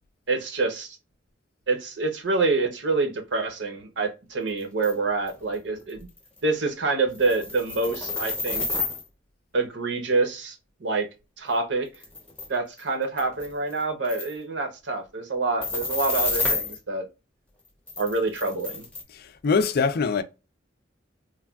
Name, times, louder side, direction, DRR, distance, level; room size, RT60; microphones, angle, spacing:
voice 1, 0.3-1.0 1.7-6.1 6.4-8.7 9.5-10.6 10.8-11.1 11.4-11.9 12.5-17.0 18.0-18.8, right 3 dB, 70° right, 0.8 m, -26 dB
sound 1, 4.8-4.9 5.3-5.4 5.9-6.0 6.2-6.4 7.1-9.0 11.5-11.6 11.9-12.5 12.8-12.9 13.2-13.8 14.1-14.3 15.6-16.8 17.9-19.0, left 3 dB, 5° left, 0.7 m, -29 dB
voice 2, 19.4-20.2, left 5 dB, 55° left, 0.4 m, -22 dB
3.2 x 2.2 x 2.2 m
head